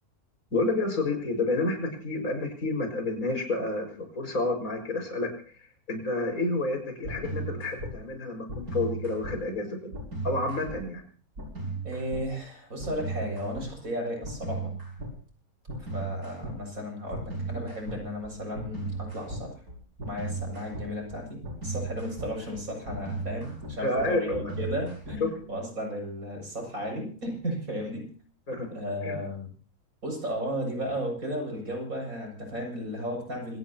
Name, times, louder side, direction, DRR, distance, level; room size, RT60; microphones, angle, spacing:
voice 1, 0.5-5.3 5.9-9.9 10.2-11.0 23.8-24.5 28.5-28.7 29.0-29.2, left 2 dB, 70° left, 4 dB, 6.3 m, -29 dB
sound 1, 7.0-7.9 8.5-9.4 9.9-10.8 11.4-12.2 12.8-13.7 14.2-15.1 15.7-16.6 17.1-25.4, right 3 dB, 85° right, 7.1 m, -36 dB
voice 2, 11.8-14.7 15.8-19.6 20.0-28.1 28.7-29.5 30.0-33.6, equal, 70° right, 2 dB, 7.7 m, -34 dB
26.5 x 18.5 x 3.0 m, 0.40 s
omnidirectional pair, 1.5 m